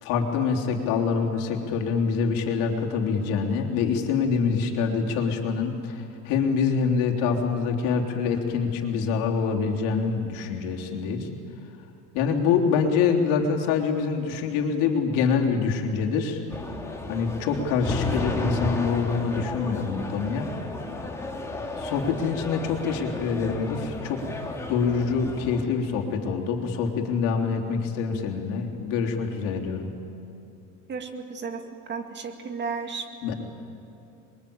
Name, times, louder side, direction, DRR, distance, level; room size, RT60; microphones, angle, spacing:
voice 1, 0.0-11.3 12.1-16.4 17.1-20.5 21.8-24.2 24.7-29.9 33.2-33.3, left 5 dB, 80° left, 1 dB, 3.4 m, -25 dB
sound 1, 16.5-25.6, left 2 dB, 10° left, 2.8 m, -33 dB
voice 2, 30.9-33.1, right 5 dB, 35° right, 5 dB, 2.1 m, -34 dB
27.5 x 22.5 x 8.7 m, 2.7 s
cardioid pair, 145°, 32 cm